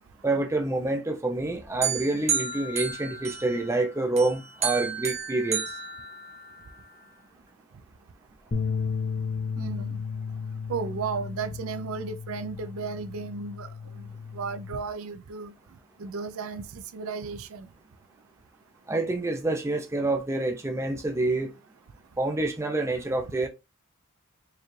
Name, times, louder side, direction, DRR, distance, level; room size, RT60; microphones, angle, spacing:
voice 1, 0.2-5.6 18.9-21.5 22.2-23.5, right 2 dB, 15° right, 0.5 m, -27 dB
sound 1, 1.8-3.8 4.2-6.7, right 6 dB, 30° right, 1.0 m, -31 dB
sound 2, 8.5-14.8, left 5 dB, 40° left, 0.6 m, -34 dB
voice 2, 9.6-10.0 10.7-13.7 13.9-15.5 16.0-17.7, right 5 dB, 70° right, 0.4 m, -34 dB
4.7 x 2.3 x 3.1 m
head